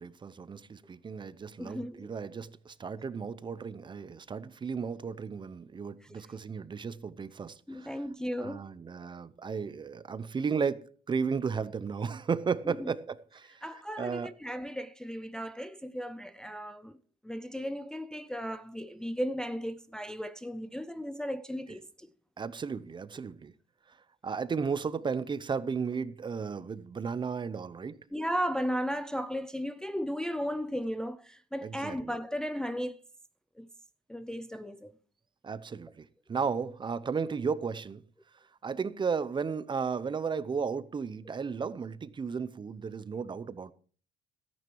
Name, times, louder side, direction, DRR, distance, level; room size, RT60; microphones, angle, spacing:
voice 1, 0.0-7.9 8.4-14.3 22.4-23.5 24.2-28.0 31.6-32.1 35.4-38.0 38.6-43.7, right 5 dB, 25° right, 0.7 m, -34 dB
voice 2, 1.6-2.1 7.7-8.7 12.8-12.9 13.6-17.0 17.2-22.1 28.1-33.0 33.6-33.7 34.1-34.9, equal, 5° left, 0.5 m, -35 dB
13.5 x 9.3 x 4.6 m
cardioid pair, 110°, 17 cm